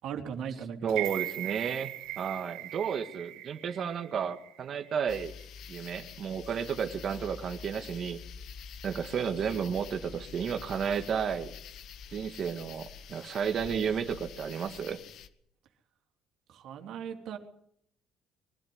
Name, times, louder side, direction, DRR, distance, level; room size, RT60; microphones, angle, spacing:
voice 1, 0.0-1.0 16.5-17.4, right 7 dB, 70° right, 3 dB, 3.3 m, -38 dB
voice 2, 0.8-5.3 5.7-8.2 8.8-11.5 12.1-15.0, right 7 dB, 50° right, 6 dB, 1.9 m, -32 dB
sound 1, 0.9-5.0 5.4-5.5, right 17 dB, 85° right, 1.6 m, -39 dB
sound 2, 5.1-15.3, left 7 dB, 65° left, 1.9 m, -46 dB
23.0 x 13.5 x 9.6 m, 0.68 s
cardioid pair, 110°, 0 cm